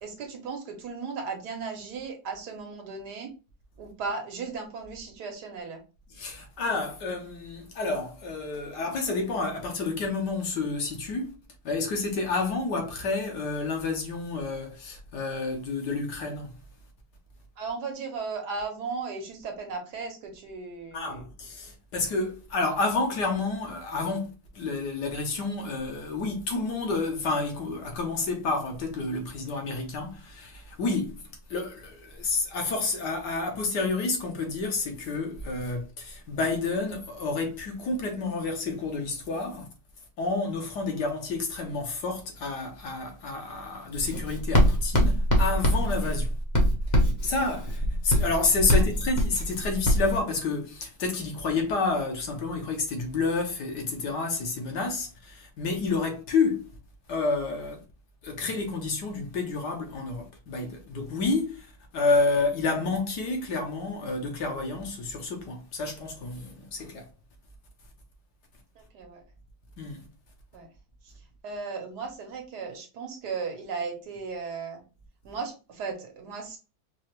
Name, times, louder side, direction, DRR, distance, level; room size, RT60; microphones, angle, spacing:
voice 1, 0.0-3.3 3.8-5.8 17.6-21.3 68.8-69.2 70.5-70.7 71.4-74.8 75.2-76.6, right 4 dB, 65° right, 1.4 m, -36 dB
voice 2, 6.1-11.3 11.6-16.6 20.9-31.2 31.5-39.7 40.2-46.3 47.2-56.7 57.1-57.8 58.2-61.7 61.9-67.0 69.8-70.0, left 3 dB, 70° left, 1.5 m, -29 dB
Writing, 43.9-50.2, equal, 35° left, 0.8 m, -24 dB
4.7 x 2.4 x 3.0 m
omnidirectional pair, 1.9 m